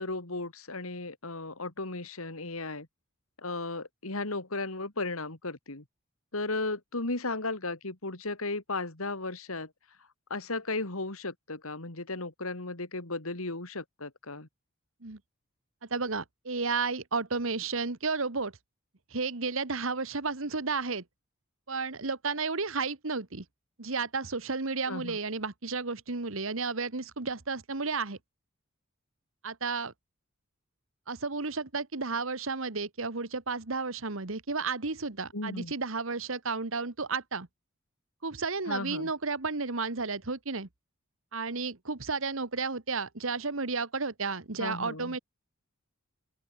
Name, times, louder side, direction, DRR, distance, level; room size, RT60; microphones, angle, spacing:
voice 1, 0.0-2.9 3.4-5.8 6.3-9.7 10.3-14.5 24.9-25.2 35.3-35.7 38.7-39.1 44.6-45.2, left 2 dB, 80° left, 2.9 m, -35 dB
voice 2, 15.9-18.5 19.1-21.0 21.7-23.4 23.8-28.2 29.4-29.9 31.1-37.5 38.2-40.7 41.3-45.2, right 4 dB, 70° right, 1.5 m, -32 dB
open air
head